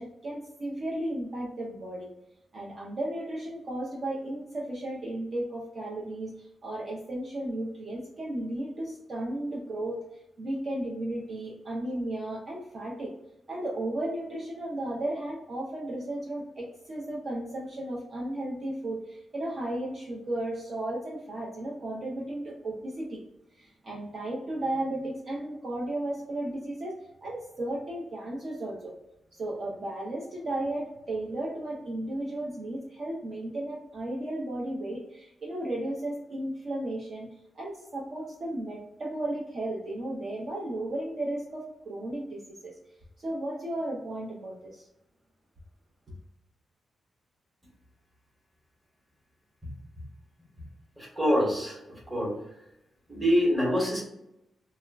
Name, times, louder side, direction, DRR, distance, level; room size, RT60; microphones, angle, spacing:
voice 1, 0.0-2.1 2.5-10.0 10.4-13.1 13.5-23.2 23.6-28.9 29.3-37.3 37.5-42.7 43.2-44.9, right 1 dB, 40° right, -4 dB, 0.5 m, -34 dB
voice 2, 51.0-52.3 53.1-54.0, equal, 10° right, -4 dB, 0.9 m, -26 dB
2.3 x 2.0 x 3.2 m, 0.84 s
wide cardioid pair, 170°, 0 cm